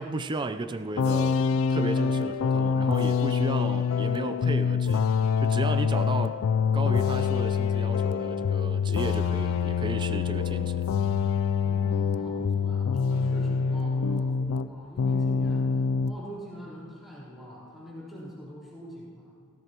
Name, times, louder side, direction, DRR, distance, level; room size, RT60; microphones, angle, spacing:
voice 1, 0.0-1.4 1.7-6.4 6.7-10.9, right 2 dB, 20° right, 9 dB, 0.4 m, -34 dB
sound 1, 1.0-14.7 15.0-16.2, left 6 dB, 70° left, 0.3 m, -25 dB
voice 2, 11.6-15.7 16.0-19.3, equal, ahead, -9 dB, 3.6 m, -44 dB
17.0 x 14.5 x 2.9 m, 2.3 s
head